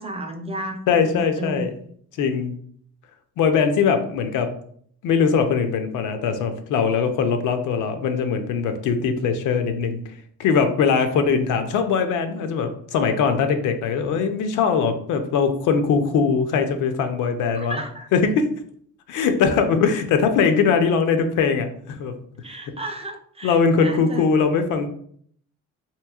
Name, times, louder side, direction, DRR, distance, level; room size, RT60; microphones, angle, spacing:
voice 1, 0.0-1.6 17.5-18.1 22.4-24.3, right 1 dB, 20° right, 4 dB, 0.4 m, -33 dB
voice 2, 0.9-1.7 2.2-2.5 3.4-4.5 5.0-10.0 10.4-17.8 18.1-18.5 19.1-22.1 23.4-24.9, left 5 dB, 85° left, 7 dB, 0.5 m, -21 dB
3.0 x 2.8 x 2.3 m, 0.62 s
cardioid pair, 90°, 30 cm